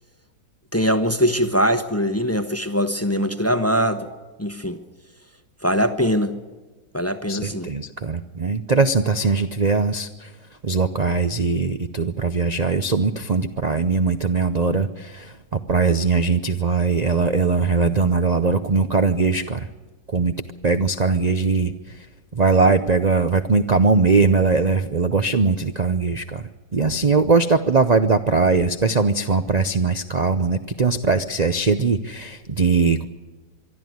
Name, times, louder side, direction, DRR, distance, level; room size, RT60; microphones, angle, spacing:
voice 1, 0.7-4.1 4.4-4.8 5.6-6.4 6.9-7.7, equal, 10° left, 9 dB, 0.7 m, -22 dB
voice 2, 7.3-10.3 10.6-19.7 20.1-20.3 20.6-21.7 22.3-26.4 26.7-33.0, right 4 dB, 85° right, 10 dB, 0.3 m, -20 dB
24.0 x 12.5 x 9.4 m, 1.3 s
omnidirectional pair, 1.9 m